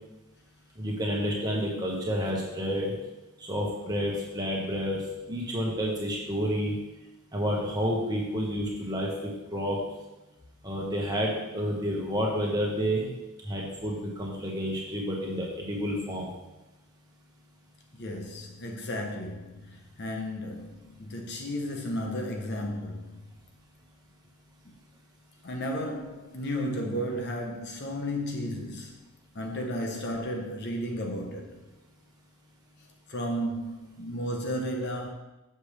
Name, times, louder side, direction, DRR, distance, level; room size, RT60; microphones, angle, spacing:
voice 1, 0.8-2.9 3.5-5.0 5.3-6.7 7.3-9.1 9.5-9.8 10.6-13.1 13.4-16.3, equal, 20° right, 1.5 m, -29 dB
voice 2, 18.0-23.2 25.4-28.9 29.3-31.6 33.1-35.1, equal, 50° left, 0.9 m, -33 dB
7.5 x 6.5 x 3.4 m
head